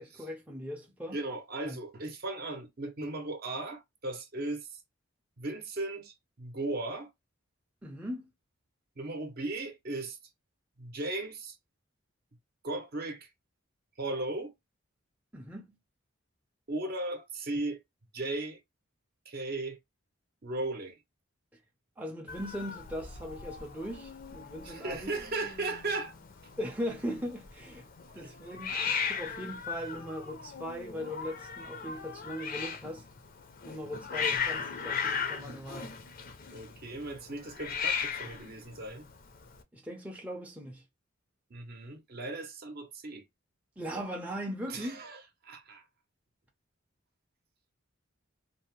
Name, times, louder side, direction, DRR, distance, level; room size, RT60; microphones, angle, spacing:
voice 1, 0.0-1.2 1.7-1.8 7.8-8.3 15.3-15.8 22.0-25.1 26.6-27.9 28.1-33.0 33.7-35.9 39.7-40.8 43.8-45.0, equal, 5° right, 0.5 m, -39 dB
voice 2, 1.1-4.8 5.4-7.1 9.0-10.2 10.8-11.6 12.6-13.3 14.0-14.5 16.7-17.8 18.1-18.6 19.3-19.8 20.4-21.0 24.6-26.1 28.2-28.3 36.5-39.0 41.5-43.2 44.7-45.8, right 2 dB, 50° right, 0.7 m, -37 dB
Hiss, 22.3-39.6, left 6 dB, 45° left, 0.5 m, -37 dB
2.6 x 2.0 x 2.8 m
head